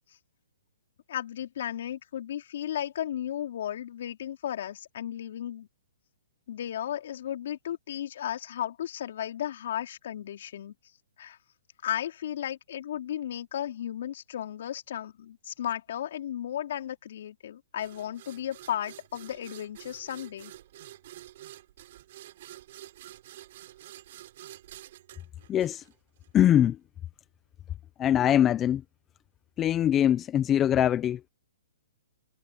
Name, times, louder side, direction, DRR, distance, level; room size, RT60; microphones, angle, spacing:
voice 1, 1.1-5.7 6.5-10.7 11.2-11.4 11.8-20.5, left 10 dB, 60° left, 3.9 m, -34 dB
sound 1, 17.8-26.3, right 14 dB, 50° right, 3.9 m, -49 dB
voice 2, 25.5-25.8 26.3-26.8 28.0-28.8 29.6-31.3, left 10 dB, 20° left, 0.9 m, -23 dB
hypercardioid pair, 145°, 0 cm